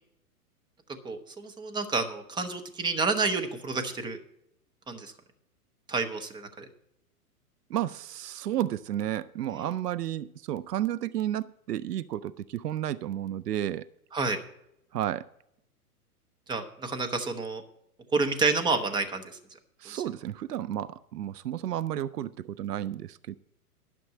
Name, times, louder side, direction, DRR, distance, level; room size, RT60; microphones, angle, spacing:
voice 1, 1.0-4.2 4.9-5.1 5.9-6.6 9.5-9.6 14.1-14.4 16.5-17.6 18.1-19.2 19.9-20.0, right 4 dB, 10° right, 0.8 m, -29 dB
voice 2, 7.7-13.9 14.9-15.3 19.8-23.3, right 12 dB, 90° right, 0.5 m, -32 dB
11.5 x 6.1 x 7.5 m
hypercardioid pair, 120°, 46 cm